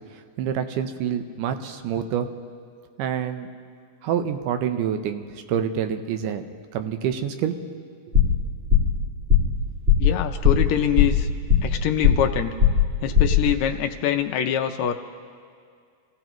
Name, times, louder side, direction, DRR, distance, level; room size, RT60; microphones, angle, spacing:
voice 1, 0.4-2.3 3.0-3.5 4.0-6.4 6.7-7.9, right 8 dB, 85° right, 8 dB, 2.4 m, -27 dB
sound 1, 8.1-8.4 8.7-9.0 9.3-9.6 9.9-10.1 10.4-10.7 11.0-11.8 12.0-12.3 12.6-12.9 13.1-13.4, left 8 dB, 35° right, 1.0 m, -17 dB
voice 2, 10.0-11.3 11.6-12.5 13.0-14.9, left 10 dB, 80° left, 6 dB, 1.7 m, -24 dB
27.5 x 16.0 x 3.1 m, 2.1 s
omnidirectional pair, 3.7 m